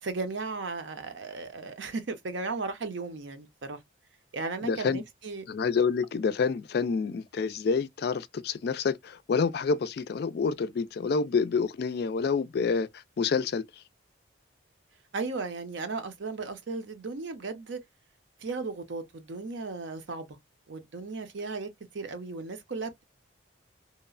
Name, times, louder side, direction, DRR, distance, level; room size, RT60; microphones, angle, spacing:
voice 1, 0.0-3.8 4.3-5.4 15.1-17.8 18.4-20.3 20.7-23.0, right 3 dB, 70° right, 0.6 m, -36 dB
voice 2, 4.6-5.0 5.5-12.9 13.2-13.6, left 5 dB, 55° left, 0.3 m, -28 dB
2.9 x 2.1 x 2.3 m
head